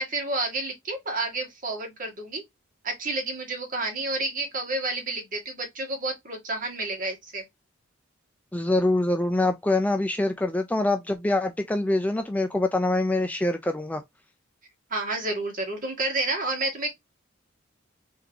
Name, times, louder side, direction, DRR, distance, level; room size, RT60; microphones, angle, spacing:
voice 1, 0.0-2.4 2.8-7.4 14.9-16.9, right 2 dB, 45° right, 1.8 m, -30 dB
voice 2, 8.5-14.0, left 2 dB, 10° left, 0.4 m, -24 dB
3.7 x 3.6 x 2.8 m
head